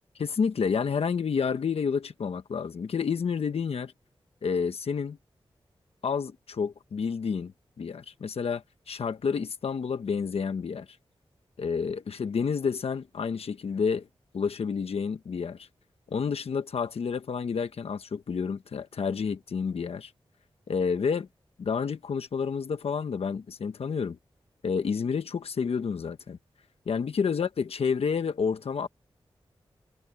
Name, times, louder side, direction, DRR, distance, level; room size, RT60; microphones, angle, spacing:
voice 1, 0.1-3.9 4.4-5.2 6.0-10.9 11.6-14.1 14.3-15.7 16.1-20.1 20.7-21.3 21.6-24.2 24.6-26.4 26.9-28.9, left 6 dB, 80° left, 1.1 m, -29 dB
cardioid pair, 45°, 10 cm